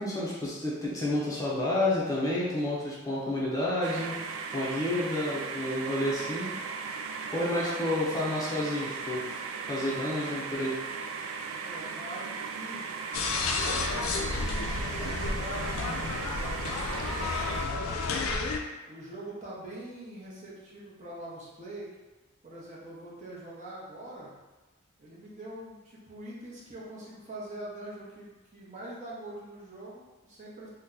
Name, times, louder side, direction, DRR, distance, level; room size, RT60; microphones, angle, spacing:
voice 1, 0.0-4.2 4.5-6.5 7.3-9.2 9.7-10.8, left 1 dB, 15° left, -7 dB, 0.6 m, -30 dB
sound 1, 3.8-17.7, right 5 dB, 65° right, 0.3 m, -37 dB
voice 2, 7.2-7.8 11.6-12.9 13.5-18.4 18.9-21.9 22.4-24.3 25.0-30.7, right 1 dB, 35° right, -6 dB, 0.8 m, -43 dB
sound 2, 13.1-18.6, left 3 dB, 80° left, 0.4 m, -31 dB
2.8 x 2.2 x 3.6 m, 1.2 s
head